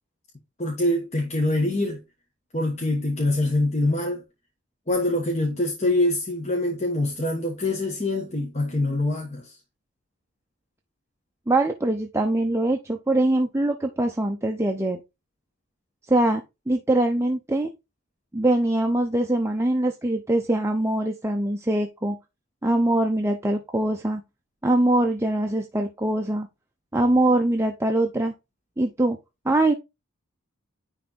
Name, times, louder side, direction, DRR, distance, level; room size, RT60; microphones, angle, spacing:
voice 1, 0.6-2.0 2.5-4.2 4.9-9.5, left 1 dB, 30° left, 1.3 m, -24 dB
voice 2, 11.5-15.0 16.1-17.7 18.3-22.2 22.6-24.2 24.6-26.5 26.9-28.3 28.8-29.2 29.4-29.7, right 1 dB, 10° right, 0.6 m, -23 dB
9.9 x 3.4 x 3.9 m
head